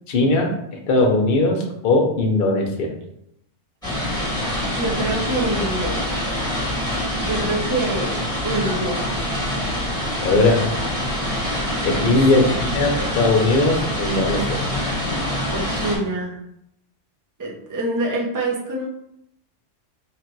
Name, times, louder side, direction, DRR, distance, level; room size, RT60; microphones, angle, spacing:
voice 1, 0.1-0.5 0.9-2.9 10.2-10.7 11.8-14.6, left 2 dB, 55° left, 1 dB, 0.8 m, -19 dB
sound 1, 3.8-16.0, left 1 dB, 5° left, 1.4 m, -25 dB
voice 2, 4.6-6.0 7.2-8.1 8.4-9.1 12.3-12.7 15.5-16.4 17.4-18.9, right 2 dB, 20° right, -3 dB, 0.6 m, -25 dB
3.2 x 2.5 x 4.5 m, 0.77 s
omnidirectional pair, 1.3 m